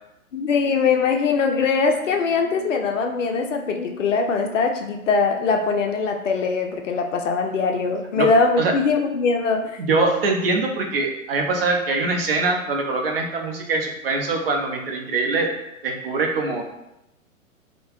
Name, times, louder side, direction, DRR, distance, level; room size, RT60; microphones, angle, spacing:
voice 1, 0.3-9.7, left 4 dB, 65° left, 4 dB, 0.5 m, -21 dB
voice 2, 9.8-15.5 15.8-16.6, right 3 dB, 45° right, 2 dB, 0.5 m, -23 dB
2.7 x 2.0 x 3.0 m, 0.87 s
figure-of-eight pair, 120°, 42 cm